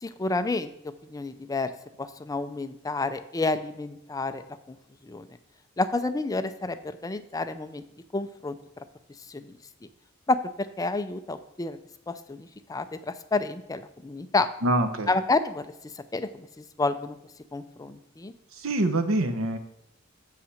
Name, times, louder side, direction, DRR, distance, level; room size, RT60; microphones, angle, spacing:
voice 1, 0.0-0.7 1.1-1.7 2.0-4.8 5.0-5.3 5.8-7.8 8.1-8.6 9.3-9.6 10.3-11.8 12.1-14.5 15.1-15.7 16.1-17.2 17.5-18.3, left 3 dB, 15° left, 11 dB, 0.4 m, -29 dB
voice 2, 14.6-15.1 18.5-19.6, right 1 dB, 75° right, 8 dB, 0.9 m, -25 dB
7.3 x 5.7 x 6.4 m, 0.81 s
head